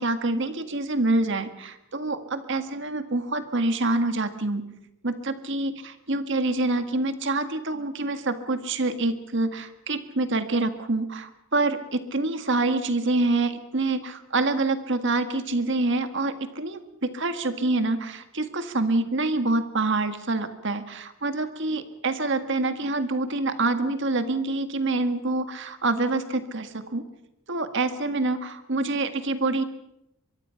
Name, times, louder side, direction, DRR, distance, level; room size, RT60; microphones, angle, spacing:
voice 1, 0.0-4.6 5.0-27.0 27.5-29.6, right 2 dB, 60° right, 9 dB, 1.8 m, -26 dB
23.5 x 23.0 x 5.8 m, 0.83 s
head